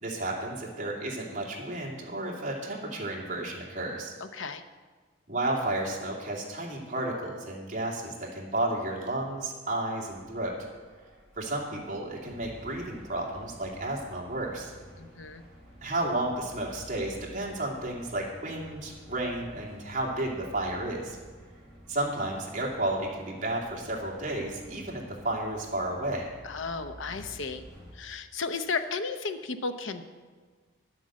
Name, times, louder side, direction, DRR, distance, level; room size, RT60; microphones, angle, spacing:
voice 1, 0.0-4.1 5.3-10.6 11.4-14.7 15.8-21.2 21.9-26.3, right 1 dB, 35° right, -3 dB, 2.6 m, -32 dB
sound 1, 10.0-27.9, equal, ahead, 3.8 m, -51 dB
voice 2, 15.0-15.4 26.4-27.6 28.0-30.0, left 4 dB, 80° left, 9 dB, 0.7 m, -34 dB
11.5 x 7.8 x 7.5 m, 1.5 s
head